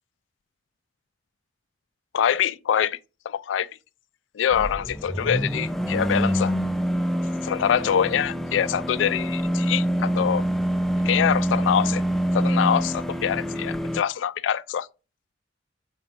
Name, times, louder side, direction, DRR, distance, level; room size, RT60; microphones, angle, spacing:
voice 1, 2.1-3.0 3.3-3.7 4.3-6.5 7.4-10.4 11.0-12.0 12.3-14.9, left 9 dB, 85° left, 0.3 m, -24 dB
sound 1, 4.5-14.0, equal, ahead, 0.3 m, -26 dB
4.4 x 4.1 x 5.3 m
head